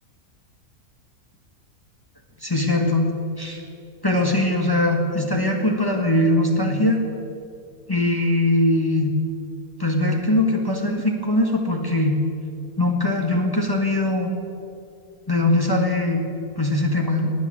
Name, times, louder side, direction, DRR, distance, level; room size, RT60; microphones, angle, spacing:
voice 1, 2.4-3.1 3.4-3.6 4.0-7.0 7.9-9.1 9.8-12.2 12.8-14.3 15.3-16.3 16.6-17.3, left 1 dB, 15° left, 1 dB, 1.6 m, -21 dB
19.5 x 9.4 x 7.6 m, 2.5 s
omnidirectional pair, 1.6 m